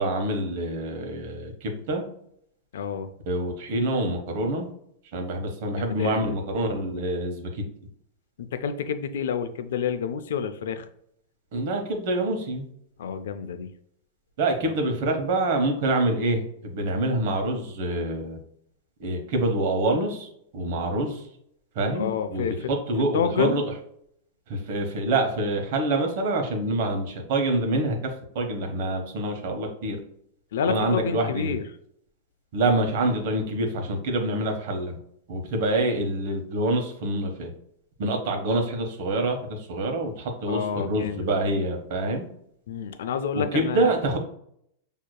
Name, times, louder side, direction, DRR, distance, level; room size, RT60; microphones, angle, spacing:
voice 1, 0.0-2.0 3.3-4.7 5.1-7.6 11.5-12.7 14.4-18.4 19.0-20.3 20.5-21.3 21.7-23.6 24.5-30.0 30.7-31.6 32.5-35.0 35.3-37.5 38.0-42.3 43.5-44.2, right 2 dB, 50° right, 3 dB, 1.0 m, -26 dB
voice 2, 2.7-3.1 5.8-6.4 8.4-10.9 13.0-13.7 21.9-22.7 23.1-23.6 30.5-31.6 40.5-41.4 42.7-43.9, left 7 dB, 85° left, 9 dB, 0.4 m, -29 dB
6.3 x 2.8 x 2.3 m, 0.71 s
supercardioid pair, 165°, 0 cm